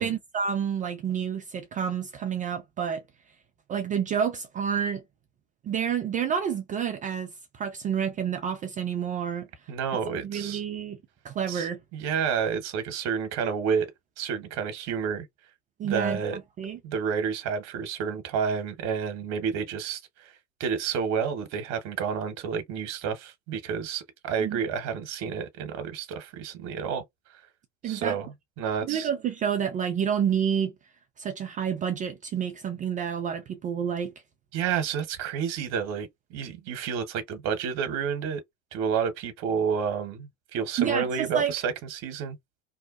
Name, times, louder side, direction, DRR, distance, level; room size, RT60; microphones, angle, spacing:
voice 1, 0.0-3.0 3.7-5.0 5.6-9.5 10.2-11.0 11.2-11.8 15.8-16.8 24.4-24.6 27.8-28.2 28.8-30.7 31.2-34.1 40.8-41.5, right 8 dB, 20° right, 0.4 m, -29 dB
voice 2, 9.7-10.6 11.5-13.9 14.2-15.3 15.8-16.4 16.8-20.3 20.6-27.0 27.8-29.1 34.5-38.4 38.7-42.4, right 6 dB, 45° right, 1.0 m, -30 dB
2.7 x 2.1 x 2.4 m
hypercardioid pair, 85°, 37 cm